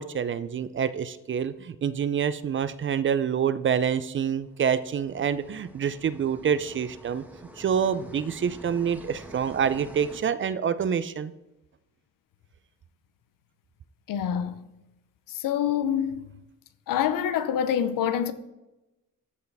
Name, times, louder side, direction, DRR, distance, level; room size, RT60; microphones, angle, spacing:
voice 1, 0.0-7.2 7.6-11.3, right 7 dB, 40° right, 0.4 m, -27 dB
sound 1, 4.4-10.2, right 1 dB, 5° right, 1.3 m, -47 dB
voice 2, 14.1-14.6 15.3-16.3 16.9-18.3, left 9 dB, 80° left, 0.7 m, -26 dB
13.5 x 4.6 x 3.4 m
cardioid pair, 90°, 33 cm